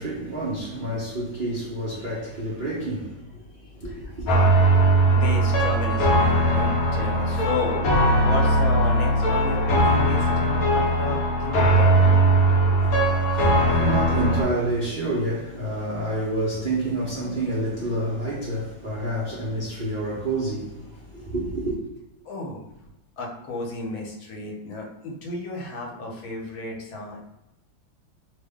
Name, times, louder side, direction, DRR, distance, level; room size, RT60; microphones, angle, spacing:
voice 1, 0.0-4.3 12.7-21.8, right 1 dB, 70° right, 0.4 m, -29 dB
voice 2, 3.8-4.5 5.1-7.9 8.1-12.1 22.2-22.6 23.2-27.2, left 2 dB, 75° left, 1.5 m, -32 dB
sound 1, 4.3-14.4, right 1 dB, 60° left, 1.1 m, -20 dB
3.3 x 2.1 x 3.5 m
omnidirectional pair, 2.2 m